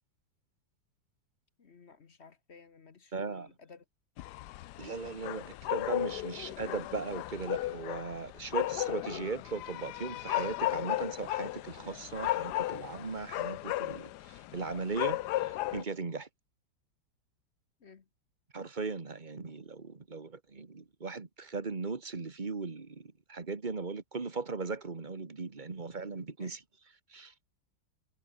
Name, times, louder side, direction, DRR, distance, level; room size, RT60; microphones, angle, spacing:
voice 1, 1.6-3.8 17.8-18.0 26.4-26.6, left 5 dB, 40° left, 1.3 m, -56 dB
voice 2, 3.1-3.5 4.8-16.3 18.5-26.6 27.1-27.3, right 4 dB, 25° right, 1.8 m, -38 dB
sound 1, 4.2-15.8, left 16 dB, 75° left, 1.1 m, -35 dB
omnidirectional pair, 1.9 m